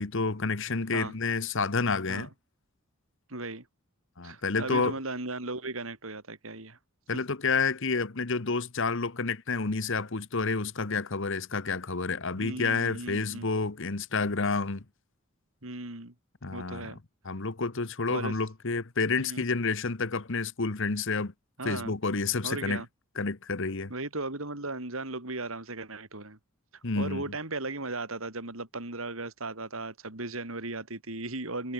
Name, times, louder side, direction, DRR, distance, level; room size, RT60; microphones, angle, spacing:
voice 1, 0.0-2.3 4.2-5.0 7.1-14.8 16.4-17.0 17.2-21.3 21.6-22.8 23.2-23.9 26.8-27.2, left 4 dB, 60° left, 1.2 m, -29 dB
voice 2, 3.3-3.7 4.2-6.8 12.4-13.5 15.6-16.1 16.5-17.0 18.1-18.3 19.2-19.5 21.6-21.9 22.4-22.9 23.9-26.4 26.9-31.7, right 2 dB, 70° right, 4.2 m, -36 dB
head